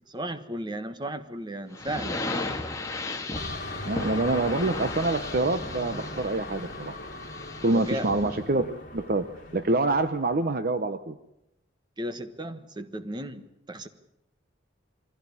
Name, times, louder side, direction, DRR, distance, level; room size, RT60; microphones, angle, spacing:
voice 1, 0.0-2.2 7.7-8.1 12.0-13.9, right 1 dB, 25° right, 10 dB, 1.4 m, -35 dB
sound 1, 1.7-8.4, left 2 dB, 15° left, 2.2 m, -35 dB
sound 2, 3.3-10.6, left 2 dB, 45° left, 3.1 m, -39 dB
voice 2, 3.8-6.9 7.6-9.3 9.5-11.2, right 2 dB, 50° right, 12 dB, 0.8 m, -26 dB
24.0 x 16.0 x 9.8 m, 0.87 s
head